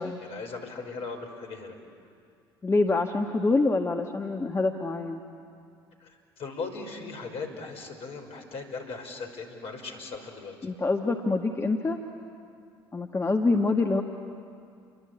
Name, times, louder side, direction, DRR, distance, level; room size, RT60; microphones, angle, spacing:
voice 1, 0.0-1.8 6.0-10.6, left 4 dB, 50° left, 4 dB, 5.5 m, -38 dB
voice 2, 2.6-5.2 10.6-12.0 12.9-14.0, left 3 dB, 20° left, 3 dB, 1.7 m, -26 dB
29.0 x 23.0 x 8.7 m, 2.4 s
figure-of-eight pair, 60°, 13 cm